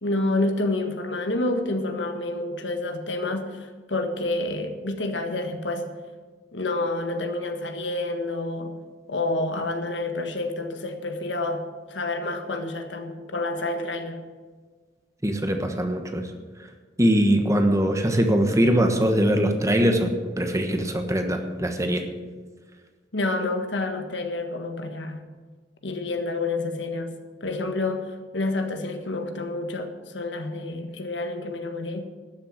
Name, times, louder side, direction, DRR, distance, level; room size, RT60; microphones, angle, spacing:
voice 1, 0.0-5.9 6.5-8.8 9.1-11.6 11.9-14.2 23.1-25.2 25.8-27.1 27.4-32.0, left 2 dB, 85° left, 6 dB, 1.5 m, -28 dB
voice 2, 15.2-16.3 17.0-22.1, equal, 20° right, 5 dB, 1.2 m, -22 dB
12.5 x 7.0 x 8.1 m, 1.4 s
head